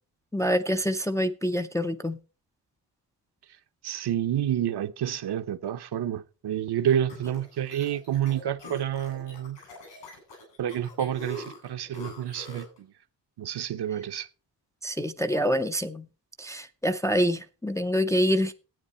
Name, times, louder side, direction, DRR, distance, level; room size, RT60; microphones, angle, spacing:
voice 1, 0.3-2.2 14.8-16.0 16.4-18.5, equal, 5° left, 0.4 m, -26 dB
voice 2, 3.8-9.6 10.6-12.9 13.4-14.3, right 10 dB, 65° right, 0.8 m, -29 dB
sound 1, 6.9-12.8, equal, 75° left, 7.9 m, -44 dB
13.0 x 9.0 x 4.3 m
wide cardioid pair, 150°, 43 cm